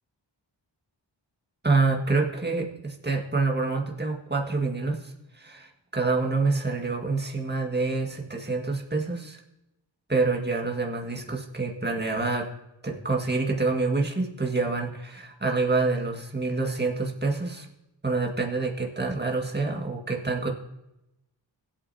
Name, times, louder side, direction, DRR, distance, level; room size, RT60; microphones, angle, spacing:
voice 1, 1.6-9.4 10.1-12.5 12.8-17.7 18.0-20.5, right 3 dB, 20° right, 1 dB, 1.8 m, -27 dB
18.5 x 8.6 x 2.8 m, 0.91 s
wide cardioid pair, 50°, 45 cm